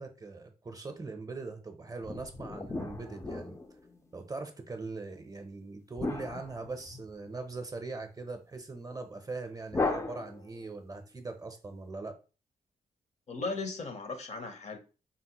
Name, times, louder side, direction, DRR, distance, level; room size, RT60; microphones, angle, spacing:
voice 1, 0.0-3.6 4.1-12.2, right 3 dB, 25° right, 0.6 m, -41 dB
sound 1, 2.0-4.1 6.0-7.4 9.7-10.7, left 3 dB, 20° left, 0.4 m, -36 dB
voice 2, 13.3-14.8, left 3 dB, 50° left, 0.8 m, -37 dB
3.9 x 2.0 x 2.9 m
cardioid pair, 80°, 15 cm